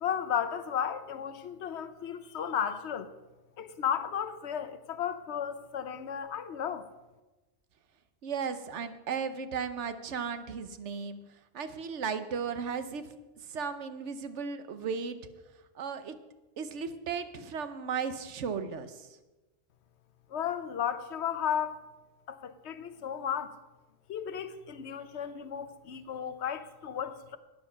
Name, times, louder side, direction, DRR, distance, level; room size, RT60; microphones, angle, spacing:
voice 1, 0.0-3.1 3.6-6.9 20.3-21.8 22.3-23.6 24.1-27.4, left 8 dB, 70° left, 1.1 m, -34 dB
voice 2, 8.2-11.2 11.5-13.1 13.5-15.2 15.8-16.1 16.6-19.1, right 6 dB, 85° right, 1.2 m, -35 dB
13.0 x 9.4 x 5.7 m
omnidirectional pair, 1.2 m